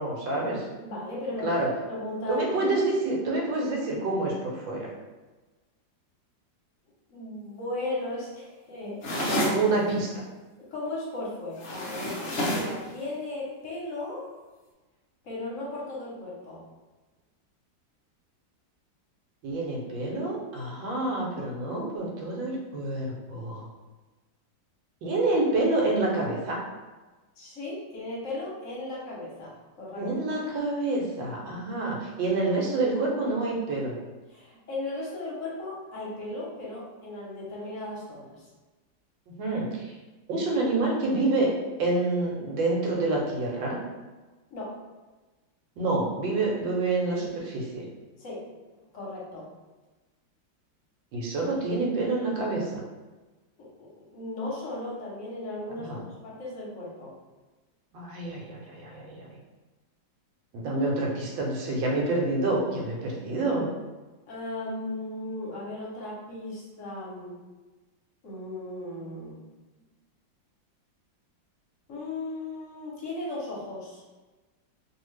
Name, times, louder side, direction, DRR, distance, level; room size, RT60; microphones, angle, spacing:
voice 1, 0.0-0.6 1.4-1.7 2.3-4.9 9.4-10.1 19.4-23.7 25.0-26.6 29.9-33.9 39.4-39.8 40.3-41.5 41.8-43.8 45.8-47.8 51.1-52.8 55.8-56.0 57.9-59.3 60.5-63.7, right 2 dB, 85° right, -2 dB, 1.5 m, -27 dB
voice 2, 0.8-1.6 1.9-2.7 7.1-9.5 10.6-14.3 15.2-16.7 27.4-30.1 34.3-38.5 44.5-44.8 48.2-48.4 48.9-49.5 53.6-57.1 64.3-67.4 68.2-69.4 71.9-74.0, left 2 dB, 55° left, -5 dB, 1.0 m, -36 dB
sound 1, 9.0-9.6 11.6-12.8, equal, 70° left, 0.6 m, -28 dB
2.8 x 2.7 x 3.2 m, 1.2 s
omnidirectional pair, 2.1 m